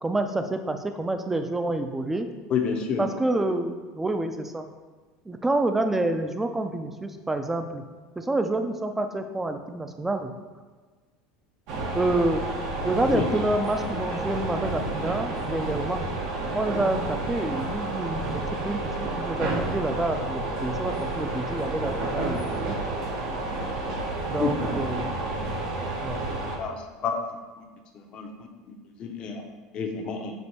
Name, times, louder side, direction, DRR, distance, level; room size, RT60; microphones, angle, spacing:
voice 1, 0.0-2.3 3.0-4.6 5.3-7.8 8.2-10.3 11.9-12.4 12.8-16.1 16.5-18.8 19.2-22.8 24.3-25.1 26.0-26.2, right 2 dB, 10° right, 7 dB, 0.4 m, -28 dB
voice 2, 2.5-3.0 13.1-13.2 24.4-25.0 26.6-26.8 27.0-27.2 28.1-28.3 29.0-29.4 29.7-30.3, left 6 dB, 45° left, 3 dB, 0.6 m, -28 dB
sound 1, 11.7-26.6, right 2 dB, 70° right, 0.8 m, -30 dB
6.1 x 2.5 x 2.8 m, 1.4 s
supercardioid pair, 100°, 2 cm